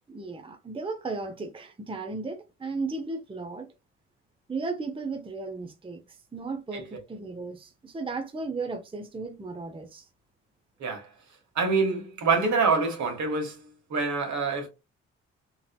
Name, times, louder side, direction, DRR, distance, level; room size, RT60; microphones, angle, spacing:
voice 1, 0.1-3.7 4.5-10.1, right 3 dB, 15° right, 0.7 m, -35 dB
voice 2, 10.8-11.1 11.5-14.7, right 4 dB, 65° right, 1.5 m, -26 dB
3.9 x 2.8 x 2.3 m
supercardioid pair, 50°, 31 cm